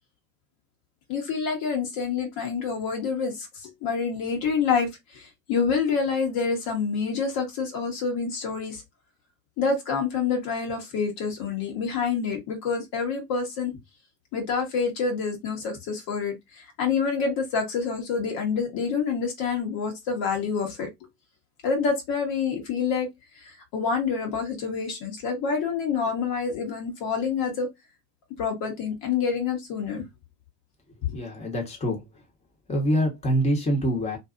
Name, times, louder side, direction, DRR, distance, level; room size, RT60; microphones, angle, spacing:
voice 1, 1.1-8.8 9.6-13.7 14.3-20.9 21.6-23.1 23.4-27.7 28.4-30.0 31.1-31.2, left 5 dB, 50° left, 1.2 m, -27 dB
voice 2, 31.1-32.0 32.7-34.2, equal, 15° left, 1.2 m, -25 dB
2.7 x 2.5 x 2.5 m
hypercardioid pair, 90°, 47 cm